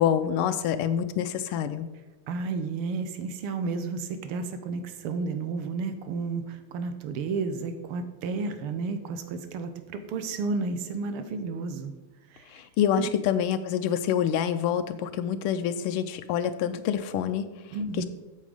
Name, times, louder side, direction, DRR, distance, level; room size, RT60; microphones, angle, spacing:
voice 1, 0.0-1.9 12.5-17.4 18.0-18.1, left 9 dB, 85° left, 10 dB, 1.5 m, -26 dB
voice 2, 2.3-11.9 12.3-12.6 13.0-13.1 17.7-18.1, right 4 dB, 90° right, 8 dB, 1.7 m, -32 dB
8.3 x 7.5 x 4.9 m, 1.1 s
omnidirectional pair, 2.4 m